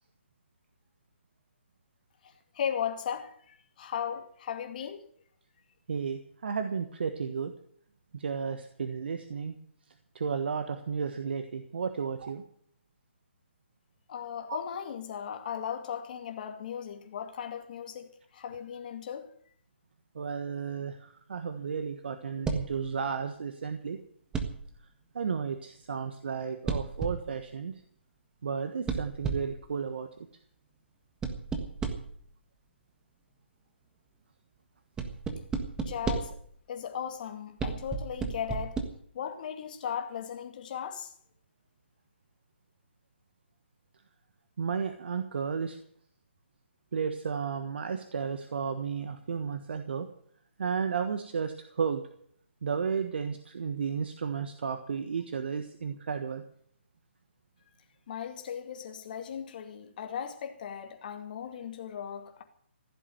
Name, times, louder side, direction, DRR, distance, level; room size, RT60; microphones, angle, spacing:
voice 1, 2.2-5.0 14.1-19.3 35.8-36.4 36.7-38.8 39.1-41.1 58.1-62.4, left 8 dB, 45° left, 2.3 m, -37 dB
voice 2, 5.9-7.5 8.1-9.6 10.1-12.4 14.5-14.6 20.1-24.0 25.1-27.7 28.4-30.3 44.6-45.8 46.9-50.1 50.6-52.0 52.6-56.4, right 6 dB, 60° right, 1.3 m, -33 dB
sound 1, 22.4-22.8 24.3-24.7 26.7-27.3 28.9-29.6 31.2-32.2 35.0-36.5 37.6-38.8, right 5 dB, 10° right, 1.5 m, -33 dB
15.5 x 7.6 x 9.5 m
figure-of-eight pair, 140°, 6 cm